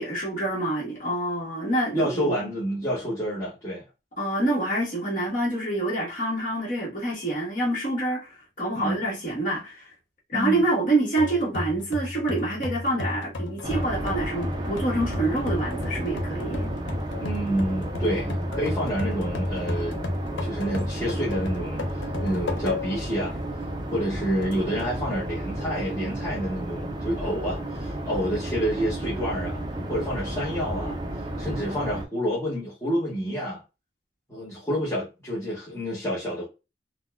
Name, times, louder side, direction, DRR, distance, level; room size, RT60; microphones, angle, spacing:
voice 1, 0.0-2.4 4.2-9.9 10.3-16.7, right 1 dB, 45° left, 1.4 m, -27 dB
voice 2, 1.9-3.8 8.7-9.0 10.3-10.6 17.2-19.9 20.4-23.4 23.9-29.6 29.9-31.0 31.4-33.6 34.3-36.4, equal, 15° left, 1.1 m, -28 dB
sound 1, 11.2-23.1 23.6-23.7 24.4-25.0, left 1 dB, 75° left, 0.7 m, -32 dB
sound 2, 13.6-32.1, right 1 dB, 20° right, 0.4 m, -33 dB
3.9 x 2.2 x 2.3 m
head